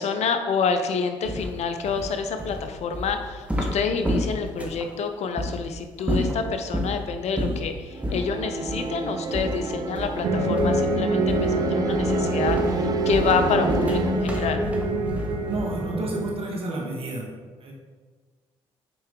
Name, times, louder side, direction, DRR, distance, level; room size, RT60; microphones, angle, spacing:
voice 1, 0.0-14.6, left 5 dB, 60° left, 7 dB, 0.6 m, -28 dB
sound 1, 1.2-4.9 5.4-5.5 6.0-7.0 7.4-7.7 8.0-8.3 8.7-8.9 9.3-10.3 10.6-10.9 11.3-11.6 11.9-15.9, equal, 10° right, 1.3 m, -30 dB
sound 2, 7.9-14.2, right 4 dB, 30° right, 0.5 m, -32 dB
sound 3, 10.2-16.3, right 1 dB, 80° right, 0.8 m, -25 dB
voice 2, 15.5-17.3 17.6-17.7, right 1 dB, 50° right, 0 dB, 1.6 m, -31 dB
6.1 x 4.5 x 3.7 m, 1.4 s
hypercardioid pair, 55°, 13 cm